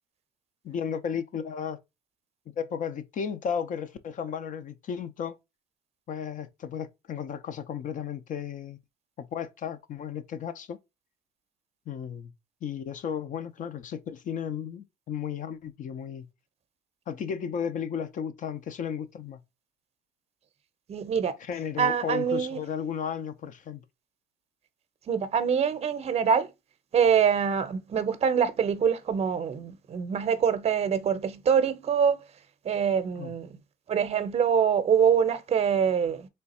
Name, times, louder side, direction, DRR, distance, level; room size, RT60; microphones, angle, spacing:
voice 1, 0.6-1.8 2.6-5.4 6.1-8.8 9.2-10.8 11.9-12.3 12.6-16.3 17.1-19.4 21.4-23.8 33.2-33.3, left 7 dB, 50° left, 0.5 m, -34 dB
voice 2, 20.9-21.3 21.8-22.6 25.1-26.5 26.9-32.2 32.6-33.6 33.9-36.3, right 7 dB, 40° right, 0.6 m, -24 dB
3.3 x 2.3 x 4.1 m
cardioid pair, 110°, 17 cm